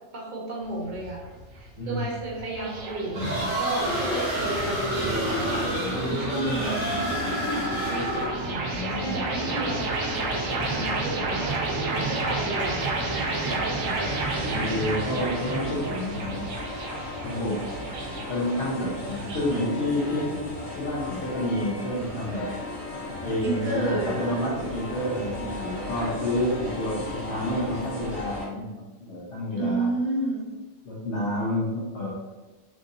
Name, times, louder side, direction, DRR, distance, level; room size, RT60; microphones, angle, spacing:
voice 1, 0.1-1.2 1.5-13.6 23.4-24.4 29.5-30.5, right 2 dB, 40° right, -4 dB, 1.2 m, -33 dB
sound 1, 0.6-19.6, right 2 dB, 80° right, 1.1 m, -31 dB
voice 2, 1.8-2.1 5.8-6.1 8.5-9.7 11.0-11.4 13.5-16.5 17.2-17.6 18.2-20.4 20.8-22.5 23.2-29.9 30.8-32.1, left 1 dB, 65° left, -5 dB, 1.2 m, -30 dB
sound 2, 3.1-8.5, equal, 65° right, 1.9 m, -28 dB
sound 3, 13.8-28.5, left 1 dB, 40° left, 1.6 m, -36 dB
6.1 x 2.5 x 2.7 m, 1.2 s
omnidirectional pair, 1.3 m